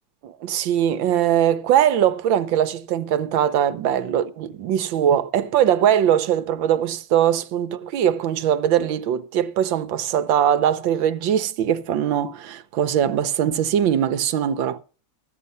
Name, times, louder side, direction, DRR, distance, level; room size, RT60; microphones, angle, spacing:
voice 1, 0.2-14.8, right 10 dB, 80° right, 1.6 m, -21 dB
14.0 x 9.2 x 5.4 m
omnidirectional pair, 2.1 m